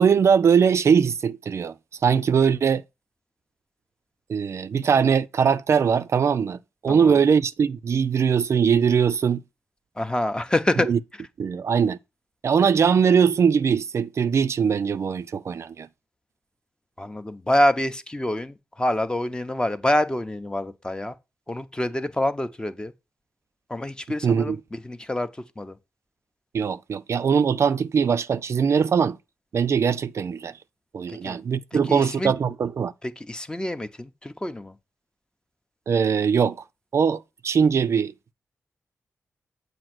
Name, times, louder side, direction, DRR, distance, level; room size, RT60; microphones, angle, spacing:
voice 1, 0.0-1.7 2.0-2.8 4.3-9.4 10.8-11.0 11.4-12.0 12.4-15.9 24.2-24.6 26.5-29.2 29.5-30.6 30.9-32.9 35.9-36.6 36.9-38.3, right 6 dB, 60° right, 0.3 m, -21 dB
voice 2, 6.9-7.2 10.0-10.9 17.0-21.1 21.5-22.9 23.7-25.3 25.6-25.8 31.1-31.4 31.7-32.3 33.0-34.7, left 1 dB, 15° left, 0.6 m, -26 dB
7.6 x 2.6 x 5.8 m
cardioid pair, 75°, 5 cm